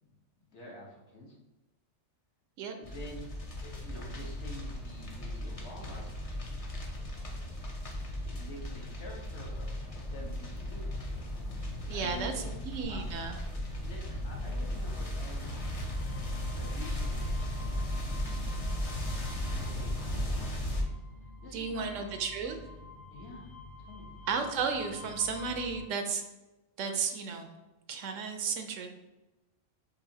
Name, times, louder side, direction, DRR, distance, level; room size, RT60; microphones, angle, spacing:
voice 1, 0.5-1.4 2.8-3.3 3.6-6.2 7.8-7.9 8.2-11.0 11.9-12.5 12.9-13.0 13.8-15.6 16.5-18.7 19.5-20.7 21.4-22.2 23.1-24.2, left 1 dB, 60° left, -3 dB, 1.2 m, -48 dB
sound 1, 2.8-20.8, left 1 dB, 35° left, 0.6 m, -36 dB
voice 2, 11.9-13.4 21.5-22.6 24.3-26.2 26.8-27.5 27.9-28.9, right 5 dB, 75° right, 6 dB, 0.9 m, -33 dB
sound 2, 14.8-25.8, left 2 dB, 85° left, 1.3 m, -49 dB
6.8 x 2.5 x 2.7 m, 1.1 s
omnidirectional pair, 1.4 m